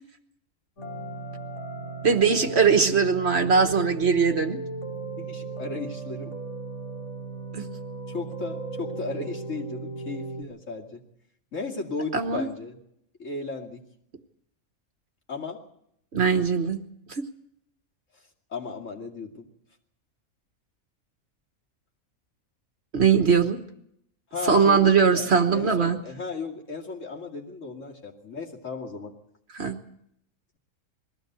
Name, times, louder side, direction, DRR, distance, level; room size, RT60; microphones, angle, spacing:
sound 1, 0.8-10.4, right 3 dB, 75° left, 3.5 m, -36 dB
voice 1, 2.0-4.6 7.5-7.6 12.1-12.5 16.1-16.8 22.9-23.6 24.4-26.0 29.5-29.8, right 5 dB, 50° right, 6 dB, 1.4 m, -21 dB
voice 2, 5.2-6.4 8.1-11.0 11.5-12.8 13.2-13.8 15.3-15.6 18.5-19.5 24.3-29.1, left 4 dB, 60° left, -1 dB, 2.8 m, -35 dB
21.5 x 15.5 x 8.0 m, 0.75 s
omnidirectional pair, 1.5 m